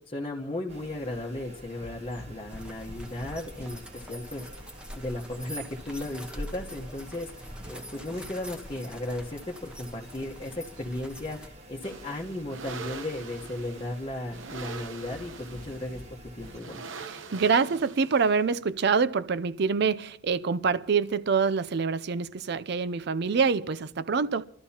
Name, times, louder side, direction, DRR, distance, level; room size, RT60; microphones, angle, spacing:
voice 1, 0.1-4.5 4.9-16.0 16.4-16.8, left 1 dB, 25° left, 1.1 m, -35 dB
sound 1, 0.7-16.6, equal, 35° right, 1.4 m, -46 dB
sound 2, 2.5-11.5, equal, 5° right, 1.0 m, -45 dB
sound 3, 11.8-18.6, right 4 dB, 70° right, 0.8 m, -43 dB
voice 2, 17.1-24.4, right 5 dB, 55° right, 0.5 m, -26 dB
27.0 x 12.5 x 2.9 m
head